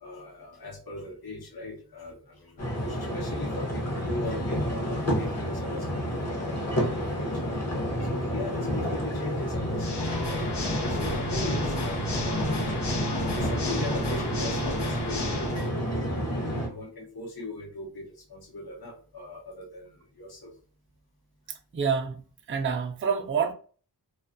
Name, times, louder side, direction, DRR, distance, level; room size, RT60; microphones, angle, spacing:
voice 1, 0.0-7.4 8.1-11.7 12.2-12.7 13.0-16.2 16.6-20.5, left 2 dB, 65° left, 1.0 m, -40 dB
sound 1, 2.6-16.7, equal, 40° left, 0.8 m, -29 dB
Water / Mechanisms, 9.7-15.7, left 2 dB, 80° left, 0.7 m, -34 dB
voice 2, 21.7-22.2 22.5-23.5, right 6 dB, 30° right, 0.4 m, -27 dB
2.5 x 2.3 x 2.5 m
wide cardioid pair, 75°, 41 cm